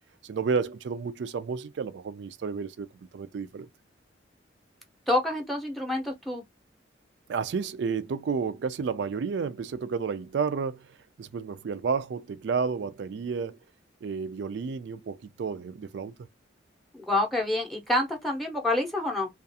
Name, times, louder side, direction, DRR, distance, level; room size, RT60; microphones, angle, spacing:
voice 1, 0.2-2.9 3.1-3.7 7.3-10.9 11.2-13.6 14.0-16.1, right 5 dB, 65° right, 0.3 m, -31 dB
voice 2, 5.1-6.4 16.9-19.3, left 1 dB, ahead, 0.6 m, -27 dB
2.4 x 2.4 x 2.6 m
head